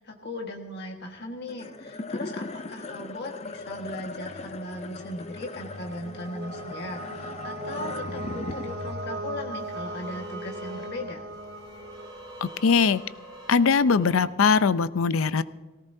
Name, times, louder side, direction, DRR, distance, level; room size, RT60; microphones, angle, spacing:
voice 1, 0.0-11.2, left 1 dB, 55° left, 2 dB, 1.6 m, -38 dB
sound 1, 1.5-12.0, left 3 dB, 30° left, 0.5 m, -39 dB
sound 2, 5.1-12.9, right 2 dB, 75° right, 2.9 m, -39 dB
sound 3, 9.5-14.2, right 1 dB, 25° right, 2.7 m, -46 dB
voice 2, 12.4-13.0 13.5-15.4, left 5 dB, 80° left, 15 dB, 0.6 m, -21 dB
19.0 x 17.5 x 2.7 m, 1.3 s
head